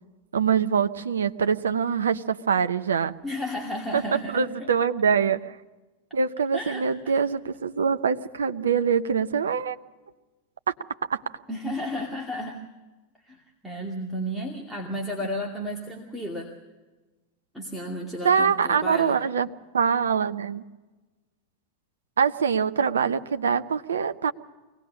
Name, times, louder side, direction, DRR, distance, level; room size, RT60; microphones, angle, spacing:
voice 1, 0.3-3.1 3.9-4.0 4.3-5.6 6.1-9.8 10.7-10.8 11.1-11.2 18.2-19.5 19.7-20.6 22.2-24.3, right 6 dB, 70° right, 10 dB, 0.8 m, -24 dB
voice 2, 3.2-4.7 6.5-7.2 11.5-12.6 13.2-16.5 17.5-19.2, equal, ahead, -2 dB, 2.4 m, -33 dB
23.5 x 19.0 x 6.5 m, 1.2 s
figure-of-eight pair, 90°, 0 cm